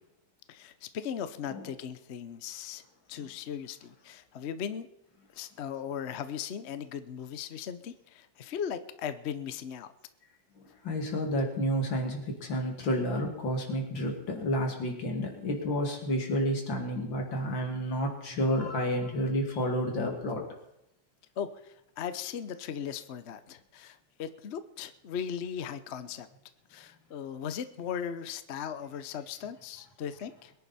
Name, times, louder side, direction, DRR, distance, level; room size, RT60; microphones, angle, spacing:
voice 1, 0.5-2.8 3.1-4.9 5.3-9.9 21.4-26.3 26.7-30.5, left 8 dB, 50° left, 12 dB, 0.8 m, -38 dB
voice 2, 10.8-20.4, equal, 85° left, 2 dB, 3.2 m, -30 dB
23.0 x 10.5 x 4.2 m, 0.81 s
omnidirectional pair, 2.0 m